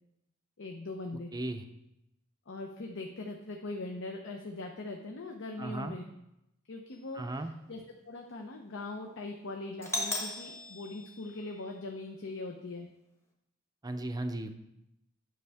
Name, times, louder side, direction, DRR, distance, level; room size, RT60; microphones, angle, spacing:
voice 1, 0.6-1.3 2.5-6.1 6.7-12.9, left 2 dB, 60° left, 3 dB, 0.7 m, -41 dB
voice 2, 1.3-1.6 5.6-5.9 7.1-7.5 13.8-14.6, right 1 dB, 20° right, 7 dB, 0.5 m, -36 dB
Doorbell, 9.8-11.8, left 2 dB, 15° left, 1.1 m, -37 dB
9.6 x 6.2 x 3.5 m, 0.86 s
head